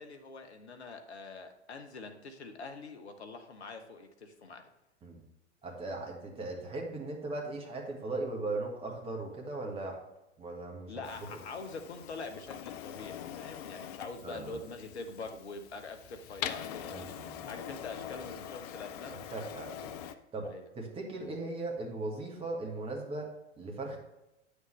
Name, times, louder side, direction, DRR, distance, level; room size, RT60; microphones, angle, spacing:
voice 1, 0.0-4.6 10.9-17.0 17.4-19.2 20.4-20.6, left 3 dB, 65° left, 6 dB, 1.1 m, -44 dB
voice 2, 5.6-10.0 10.4-10.9 14.2-14.6 16.8-17.5 19.1-19.7 20.0-20.5 20.7-23.3 23.6-24.0, right 2 dB, 15° right, 0 dB, 1.6 m, -38 dB
Printer, 11.0-20.1, left 10 dB, 35° left, 0.4 m, -43 dB
9.1 x 6.5 x 3.3 m, 0.93 s
figure-of-eight pair, 95°, 35 cm